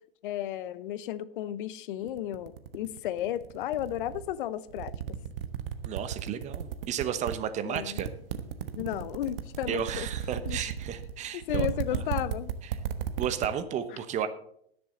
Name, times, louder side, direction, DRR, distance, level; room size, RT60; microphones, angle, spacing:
voice 1, 0.2-5.0 7.7-8.0 8.7-10.1 10.4-10.6 11.3-12.5, left 12 dB, 55° left, 17 dB, 0.8 m, -33 dB
sound 1, 2.1-4.3 4.7-7.3 7.7-13.5, right 10 dB, 60° right, 1.3 m, -34 dB
voice 2, 5.8-8.1 9.7-12.0 13.2-14.3, right 9 dB, 20° right, 11 dB, 1.0 m, -33 dB
20.5 x 7.0 x 4.0 m, 0.69 s
hypercardioid pair, 130°, 31 cm